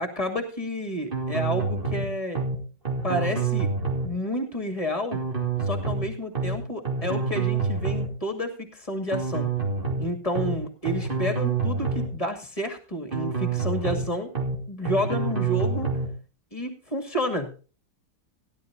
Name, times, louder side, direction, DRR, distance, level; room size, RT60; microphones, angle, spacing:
voice 1, 0.0-2.4 3.0-3.7 4.0-5.2 5.6-9.5 10.0-14.3 14.7-15.9 16.5-17.6, equal, 20° left, 5 dB, 2.4 m, -30 dB
sound 1, 1.1-2.0 2.3-2.6 2.8-4.1 5.1-6.0 6.3-6.6 6.8-8.1 9.1-10.0 10.3-10.6 10.8-12.1 13.1-14.0 14.3-14.6 14.8-16.1, right 4 dB, 30° right, 3.1 m, -27 dB
17.5 x 11.5 x 2.7 m, 0.35 s
omnidirectional pair, 1.9 m